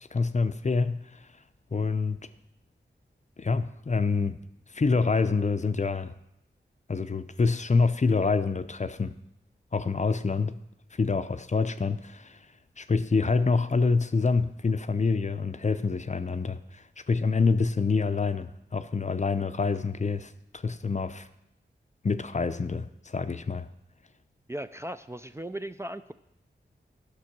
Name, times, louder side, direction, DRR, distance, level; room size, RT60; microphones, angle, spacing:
voice 1, 0.1-1.2 1.7-2.2 3.4-4.4 4.7-6.1 6.9-9.1 9.7-10.6 10.9-12.4 12.8-21.3 22.0-23.7, left 4 dB, 40° left, 0.6 m, -26 dB
voice 2, 24.5-26.1, right 1 dB, 15° right, 0.4 m, -37 dB
11.5 x 6.1 x 6.0 m
wide cardioid pair, 55°, 19 cm